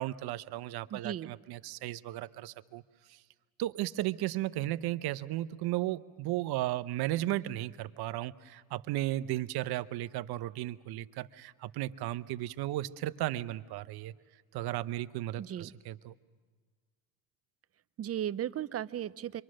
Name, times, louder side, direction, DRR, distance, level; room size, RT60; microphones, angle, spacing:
voice 1, 0.0-2.8 3.1-3.2 3.6-14.1 14.5-16.2, right 15 dB, 65° right, 13 dB, 0.8 m, -35 dB
voice 2, 0.9-1.3 15.4-15.7 18.0-19.4, right 11 dB, 35° right, 16 dB, 0.6 m, -36 dB
26.5 x 24.0 x 6.4 m, 1.5 s
supercardioid pair, 80°, 41 cm